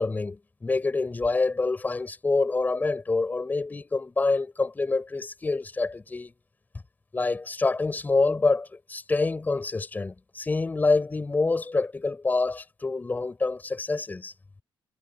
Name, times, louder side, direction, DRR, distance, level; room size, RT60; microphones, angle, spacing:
voice 1, 0.0-6.3 7.1-14.3, left 3 dB, 20° left, 4.3 m, -26 dB
cardioid pair, 150°, 10 cm